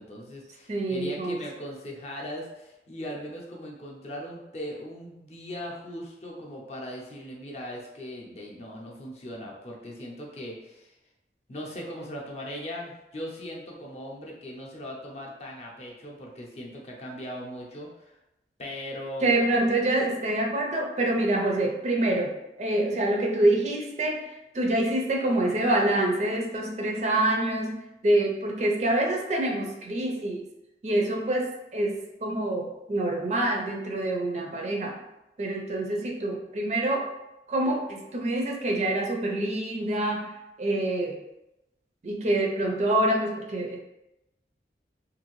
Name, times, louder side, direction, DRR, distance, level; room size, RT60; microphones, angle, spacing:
voice 1, 0.0-11.0 11.5-18.2 18.6-19.7, equal, 35° left, -2 dB, 0.5 m, -39 dB
voice 2, 0.7-1.4 19.2-24.3 24.5-27.8 28.0-30.4 30.8-35.0 35.4-37.1 37.5-41.2 42.0-43.8, right 1 dB, 40° right, 1 dB, 0.4 m, -26 dB
2.6 x 2.6 x 3.0 m, 0.93 s
head